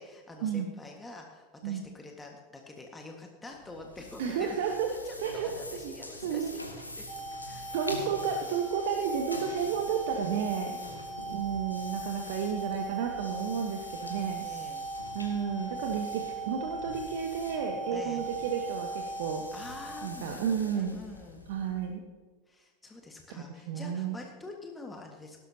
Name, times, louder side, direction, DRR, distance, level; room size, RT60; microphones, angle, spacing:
voice 1, 0.0-7.1 7.4-8.0 10.7-11.1 14.4-14.8 17.9-18.2 19.5-21.4 22.5-25.4, left 2 dB, 15° left, 2 dB, 1.7 m, -47 dB
sound 1, 3.5-21.9, left 1 dB, 90° left, 1.5 m, -46 dB
voice 2, 4.2-4.9 5.2-5.9 6.2-6.5 7.7-10.8 11.3-14.5 15.1-19.4 20.0-21.0 21.5-22.0 23.7-24.2, right 7 dB, 60° right, 3 dB, 1.3 m, -32 dB
sound 2, 7.1-20.1, right 3 dB, 5° right, 2.0 m, -39 dB
16.5 x 13.0 x 2.9 m, 1.5 s
figure-of-eight pair, 80°, 0 cm